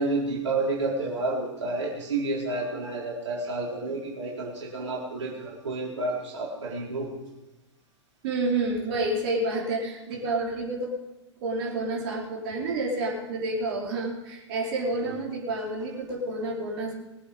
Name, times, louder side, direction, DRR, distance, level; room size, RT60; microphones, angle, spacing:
voice 1, 0.0-7.1 15.0-15.1, right 2 dB, 70° right, -4 dB, 4.4 m, -30 dB
voice 2, 8.2-10.9 11.4-16.9, right 2 dB, 50° right, -3 dB, 4.6 m, -29 dB
23.0 x 8.6 x 5.3 m, 1.1 s
figure-of-eight pair, 105°, 15 cm